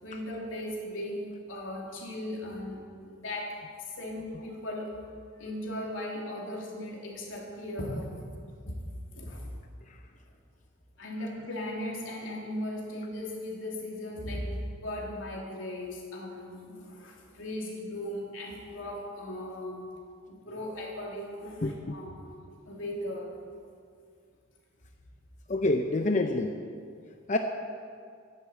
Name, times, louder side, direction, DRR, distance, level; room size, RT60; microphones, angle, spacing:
voice 1, 0.0-5.0 5.4-8.1 8.7-8.8 9.1-9.5 11.0-19.8 20.3-23.4, left 1 dB, 85° left, -2 dB, 3.2 m, -37 dB
voice 2, 25.5-26.5 27.3-27.4, left 2 dB, 40° left, 5 dB, 0.7 m, -26 dB
12.0 x 11.0 x 8.4 m, 2.2 s
head